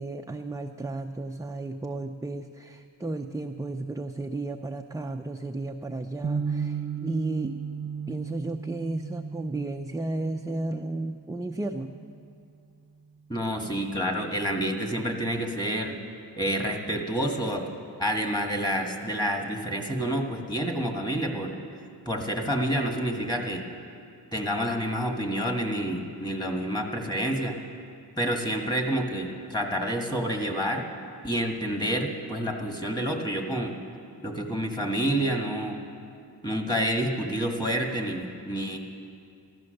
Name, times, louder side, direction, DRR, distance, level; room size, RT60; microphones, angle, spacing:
voice 1, 0.0-7.6 8.1-11.9, right 2 dB, 10° right, 4 dB, 0.4 m, -33 dB
sound 1, 6.2-12.3, right 6 dB, 25° right, 0.8 m, -36 dB
voice 2, 13.3-16.0 16.4-17.7 18.0-21.5 22.1-23.6 24.3-27.6 28.2-30.9 31.2-33.8 34.2-35.8 36.4-38.8, equal, 10° left, 2 dB, 1.7 m, -28 dB
15.5 x 12.5 x 6.5 m, 2.4 s
cardioid pair, 100°, 42 cm